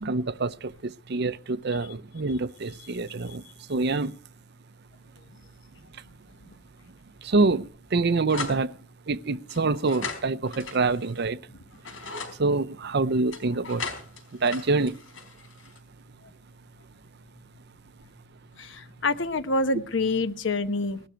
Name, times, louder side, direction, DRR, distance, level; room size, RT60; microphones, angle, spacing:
voice 1, 0.0-3.4 3.7-4.1 7.2-8.7 9.1-11.4 12.4-13.8 14.4-15.0, right 3 dB, 55° right, 0.7 m, -26 dB
sound 1, 8.3-8.6 9.5-11.3 11.7-12.4 13.3-15.8, left 4 dB, 80° left, 4.4 m, -37 dB
voice 2, 18.6-21.0, left 2 dB, 65° left, 1.1 m, -27 dB
19.5 x 12.0 x 4.5 m
head